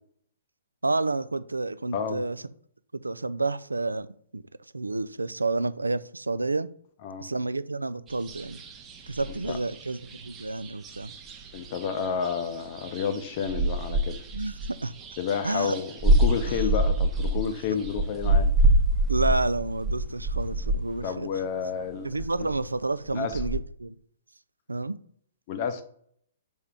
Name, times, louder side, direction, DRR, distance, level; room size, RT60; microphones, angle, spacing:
voice 1, 0.8-2.4 3.0-4.1 4.3-4.4 4.7-6.7 7.2-8.6 9.1-11.1 14.3-14.9 15.4-15.8 16.5-16.7 19.1-21.3 22.0-24.0 24.7-25.0, right 2 dB, 80° right, 0.3 m, -29 dB
voice 2, 1.9-2.2 7.0-7.3 9.4-9.6 11.5-14.2 15.2-18.5 21.0-22.2 23.1-23.4 25.5-25.8, left 7 dB, 40° left, 0.5 m, -30 dB
sound 1, 8.1-21.2 21.6-21.7 22.0-23.6, right 1 dB, 20° right, 0.7 m, -27 dB
4.3 x 3.5 x 3.6 m
figure-of-eight pair, 120°, 0 cm